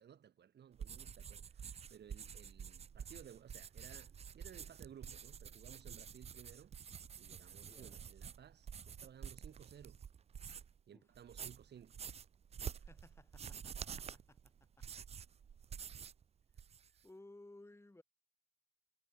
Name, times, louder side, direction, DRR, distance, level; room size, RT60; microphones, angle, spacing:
voice 1, 0.0-6.7 7.2-10.0 10.9-12.0 16.9-17.0, right 9 dB, 60° right, 3.1 m, -58 dB
sound 1, 0.7-10.8 11.2-16.2 16.5-17.0, right 7 dB, 30° right, 0.4 m, -49 dB
voice 2, 7.7-8.0 10.9-11.0 12.8-14.8 16.5-16.7 17.0-18.0, left 2 dB, 15° left, 5.9 m, -60 dB
cardioid pair, 90°, 20 cm